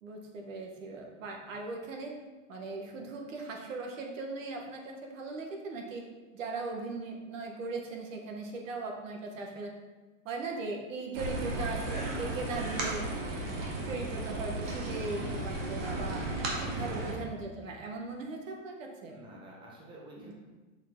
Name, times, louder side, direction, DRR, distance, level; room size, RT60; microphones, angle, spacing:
voice 1, 0.0-2.1 2.5-6.0 6.3-9.7 10.2-13.1 13.9-16.2 16.6-19.2 20.2-20.3, right 3 dB, 75° right, 1 dB, 1.3 m, -39 dB
sound 1, 11.1-17.1, right 2 dB, 50° right, 1.7 m, -35 dB
voice 2, 16.8-17.3 19.1-20.3, right 2 dB, 10° right, -3 dB, 0.9 m, -50 dB
6.7 x 4.5 x 3.7 m, 1.2 s
supercardioid pair, 150°, 39 cm